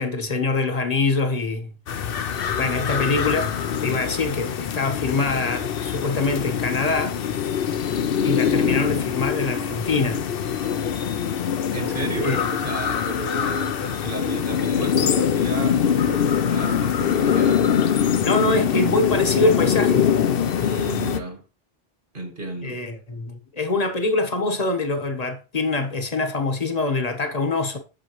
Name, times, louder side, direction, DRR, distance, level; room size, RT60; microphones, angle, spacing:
voice 1, 0.0-1.7 2.6-7.2 8.2-10.3 12.2-12.5 18.2-20.0 22.6-27.8, left 3 dB, 40° left, 1.2 m, -24 dB
sound 1, 1.9-21.2, left 8 dB, 65° left, 0.8 m, -23 dB
voice 2, 11.7-18.2 20.6-21.4 22.1-22.8, right 2 dB, 55° right, 1.9 m, -33 dB
7.9 x 7.6 x 3.0 m
omnidirectional pair, 1.1 m